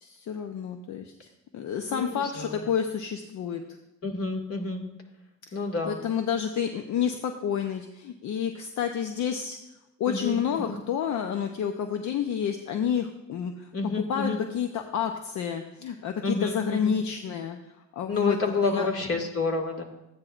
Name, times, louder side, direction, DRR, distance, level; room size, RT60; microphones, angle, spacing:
voice 1, 0.0-1.1 1.5-3.6 5.9-9.6 10.0-13.7 14.1-17.6 18.0-18.4 18.6-18.9, left 8 dB, 70° left, 6 dB, 0.8 m, -29 dB
voice 2, 1.9-2.6 4.0-4.8 5.5-6.0 10.1-10.8 13.7-14.4 16.2-17.0 18.1-19.8, left 3 dB, 50° left, 2 dB, 2.1 m, -29 dB
14.5 x 9.5 x 2.5 m, 0.95 s
cardioid pair, 90°, 30 cm